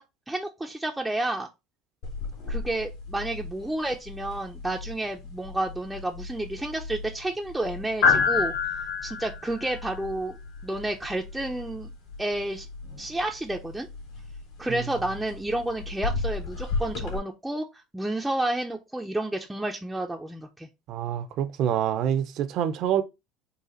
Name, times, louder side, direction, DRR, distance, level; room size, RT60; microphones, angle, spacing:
voice 1, 0.3-1.5 2.5-8.5 9.0-10.4 10.6-11.9 12.2-12.7 13.0-13.9 14.6-20.7, right 1 dB, 5° right, 0.5 m, -30 dB
sound 1, 2.0-17.2, left 5 dB, 75° left, 1.8 m, -31 dB
voice 2, 20.9-23.0, right 9 dB, 55° right, 0.6 m, -26 dB
4.0 x 2.4 x 3.9 m
supercardioid pair, 110°, 0 cm